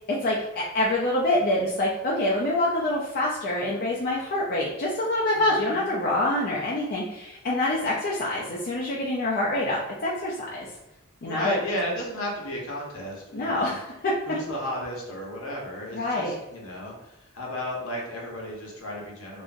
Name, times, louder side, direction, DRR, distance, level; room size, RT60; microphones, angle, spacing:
voice 1, 0.1-10.7 11.2-11.6 13.3-14.1 15.9-16.3, left 1 dB, 45° left, -5 dB, 0.4 m, -26 dB
voice 2, 5.3-6.0 11.2-13.8 14.3-19.4, equal, 70° left, -2 dB, 0.9 m, -34 dB
3.6 x 2.0 x 2.5 m, 0.96 s
head